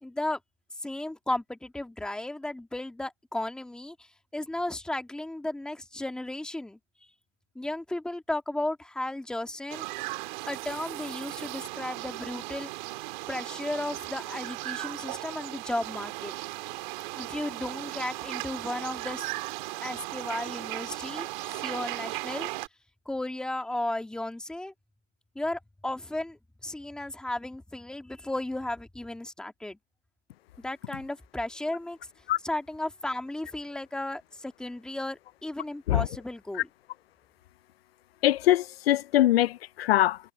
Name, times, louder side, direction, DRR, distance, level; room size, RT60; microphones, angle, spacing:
voice 1, 0.0-0.4 0.8-3.9 4.3-6.8 7.5-9.8 10.5-12.7 13.3-16.3 17.1-19.2 19.8-22.5 23.0-24.7 25.3-29.8 30.6-32.0 32.4-36.7, left 1 dB, ahead, 1.7 m, -34 dB
sound 1, 9.7-22.7, right 22 dB, 40° right, 2.7 m, -37 dB
voice 2, 38.2-40.2, left 14 dB, 55° left, 0.4 m, -23 dB
hypercardioid pair, 155°, 37 cm